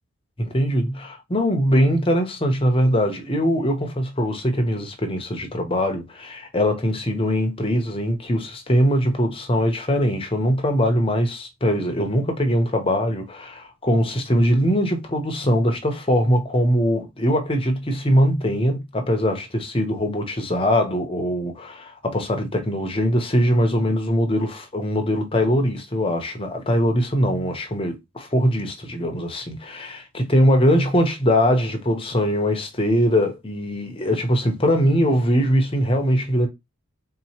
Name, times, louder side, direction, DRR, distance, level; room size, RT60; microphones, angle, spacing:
voice 1, 0.4-36.5, equal, 25° left, 0.7 m, -21 dB
3.9 x 2.9 x 2.8 m
head